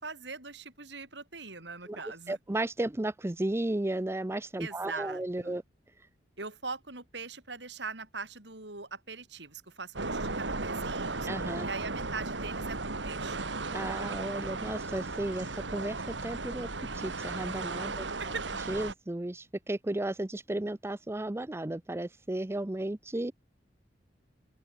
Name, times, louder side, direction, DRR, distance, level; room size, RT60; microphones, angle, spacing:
voice 1, 0.0-2.4 4.6-5.6 6.4-11.3 11.6-13.5 18.2-18.5, right 4 dB, 70° right, 6.7 m, -41 dB
voice 2, 2.3-5.6 11.3-11.7 13.7-16.7 16.9-18.1 18.7-23.3, right 1 dB, 15° right, 0.5 m, -34 dB
sound 1, 10.0-18.9, right 3 dB, 85° right, 2.5 m, -35 dB
open air
head